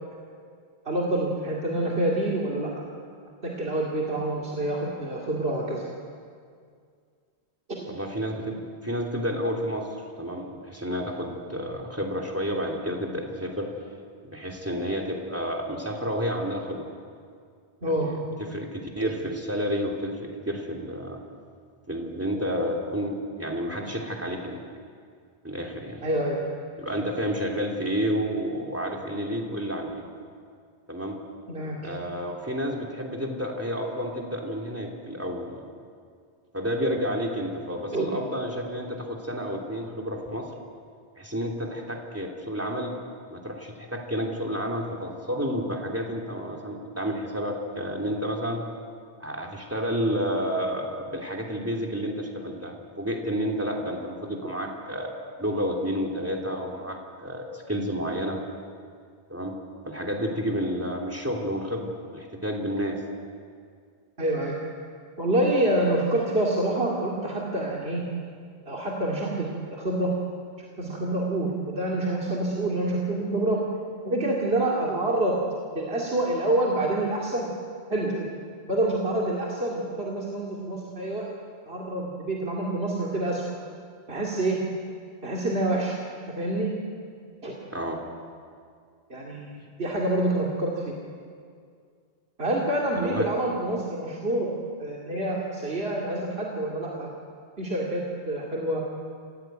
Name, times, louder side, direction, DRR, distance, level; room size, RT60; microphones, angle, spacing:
voice 1, 0.8-2.7 3.4-5.9 7.7-7.8 17.8-18.1 19.0-19.1 26.0-26.4 31.5-31.8 37.9-38.1 64.2-64.6 65.2-68.0 68.7-70.1 70.6-73.7 74.0-75.4 75.7-77.6 77.9-78.4 78.7-81.3 81.7-83.5 84.1-84.6 85.2-86.0 86.4-86.7 87.4-87.5 89.1-90.9 92.4-94.5 94.8-97.1 97.6-98.8, right 1 dB, 65° right, -3 dB, 2.8 m, -27 dB
voice 2, 7.9-13.7 14.3-16.9 17.9-21.2 21.9-24.6 25.4-26.0 26.8-30.0 30.9-31.2 31.8-35.7 36.5-40.5 41.2-42.9 43.3-48.6 49.2-55.1 55.4-58.4 59.3-59.6 59.8-63.0 87.7-88.0 92.9-93.3, equal, 15° right, 2 dB, 3.2 m, -30 dB
27.0 x 16.5 x 9.3 m, 2.2 s
omnidirectional pair, 1.1 m